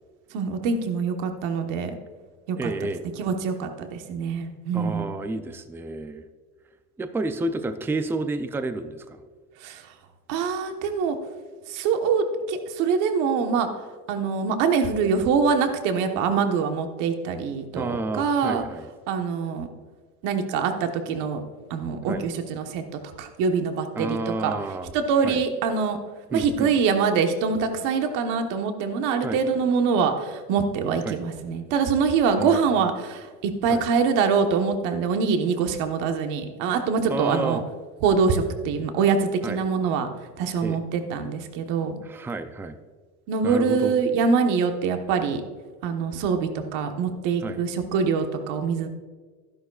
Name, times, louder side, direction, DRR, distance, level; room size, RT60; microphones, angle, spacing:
voice 1, 0.3-1.9 2.5-2.7 3.2-5.1 9.6-9.8 10.3-11.2 11.7-13.7 14.1-18.6 19.1-19.7 20.2-21.4 21.7-22.8 23.2-24.5 24.9-26.0 26.3-37.6 38.0-40.1 40.4-41.9 43.3-45.4 45.8-48.9, right 5 dB, 65° right, 6 dB, 1.2 m, -24 dB
voice 2, 2.5-3.0 4.7-6.3 7.0-9.2 17.7-18.9 22.1-22.2 23.9-24.9 25.2-25.4 26.3-26.7 29.2-29.4 31.1-31.2 32.4-32.7 33.7-33.8 37.1-37.6 39.4-39.6 40.6-40.8 42.0-42.8 43.4-44.0 47.4-47.6, right 2 dB, 5° right, 9 dB, 0.4 m, -30 dB
12.5 x 11.0 x 2.4 m, 1.4 s
supercardioid pair, 130°, 34 cm